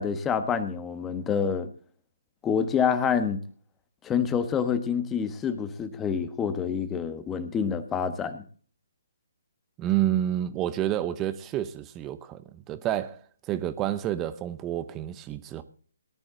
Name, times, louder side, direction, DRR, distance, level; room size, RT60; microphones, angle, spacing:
voice 1, 0.0-1.7 2.4-3.4 4.0-8.4, left 7 dB, 15° left, 1.3 m, -27 dB
voice 2, 9.8-15.6, right 12 dB, 20° right, 0.8 m, -29 dB
18.0 x 10.5 x 3.8 m
figure-of-eight pair, 145°, 0 cm